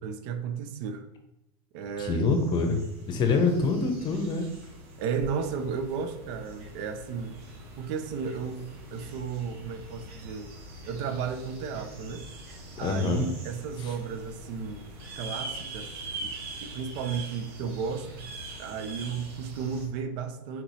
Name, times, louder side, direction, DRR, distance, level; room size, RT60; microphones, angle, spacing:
voice 1, 0.0-1.0 1.7-2.3 3.3-3.4 5.0-7.4 7.8-10.5 10.9-12.3 12.8-14.8 15.1-15.9 16.2-16.3 16.6-18.3 18.6-20.6, right 6 dB, 60° right, 8 dB, 0.6 m, -34 dB
voice 2, 2.0-2.8 3.1-4.5 12.8-13.2, left 4 dB, 40° left, 5 dB, 0.8 m, -25 dB
sound 1, 2.0-19.9, right 2 dB, 85° right, 1.6 m, -43 dB
4.4 x 3.0 x 4.1 m, 0.86 s
supercardioid pair, 130°, 12 cm